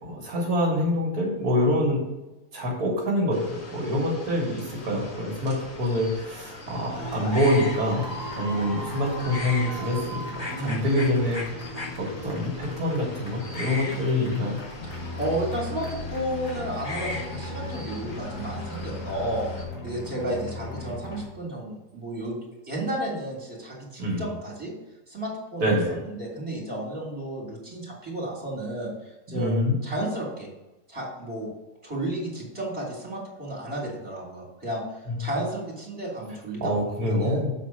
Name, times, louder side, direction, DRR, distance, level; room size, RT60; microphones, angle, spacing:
voice 1, 0.0-2.0 2.5-8.1 8.4-11.7 12.0-14.6 24.0-24.2 25.6-25.9 29.3-29.7 35.1-35.2 36.6-37.5, left 1 dB, 70° right, -2 dB, 1.9 m, -26 dB
sound 1, 3.3-19.6, left 2 dB, 45° left, 2.2 m, -40 dB
sound 2, 6.9-21.2, left 2 dB, 90° left, 2.4 m, -37 dB
voice 2, 10.5-10.8 14.8-19.5 19.8-22.4 22.6-24.7 25.1-30.5 30.9-31.5 31.8-37.4, right 1 dB, 20° right, -5 dB, 3.1 m, -32 dB
7.4 x 4.2 x 6.2 m, 1.0 s
omnidirectional pair, 1.7 m